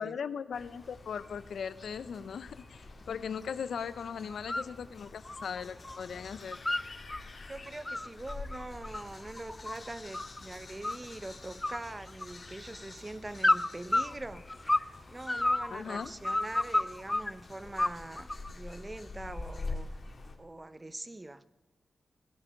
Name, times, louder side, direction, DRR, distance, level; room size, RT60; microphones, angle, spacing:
voice 1, 0.0-6.6 15.7-16.1, left 7 dB, 85° left, 0.5 m, -38 dB
sound 1, 0.5-20.4, left 3 dB, 45° left, 2.1 m, -47 dB
sound 2, 4.3-4.7 5.1-6.0 6.3-7.2 7.6-10.4 10.8-11.3 11.6-12.6 13.4-14.9 15.2-17.3 17.8-18.5, left 1 dB, 20° left, 0.4 m, -30 dB
voice 2, 7.5-14.5 15.1-20.0 20.4-21.4, right 2 dB, 20° right, 0.7 m, -43 dB
16.0 x 9.6 x 6.7 m
cardioid pair, 80°, 0 cm